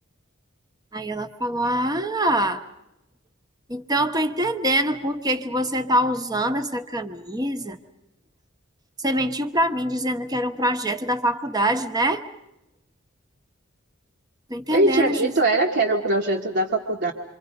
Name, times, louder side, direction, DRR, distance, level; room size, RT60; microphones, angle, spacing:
voice 1, 0.9-2.6 3.7-7.8 9.0-12.2 14.5-15.3, right 1 dB, 20° right, 8 dB, 1.1 m, -24 dB
voice 2, 14.7-17.1, right 2 dB, 55° right, 0 dB, 1.4 m, -21 dB
27.5 x 24.5 x 5.3 m, 0.87 s
head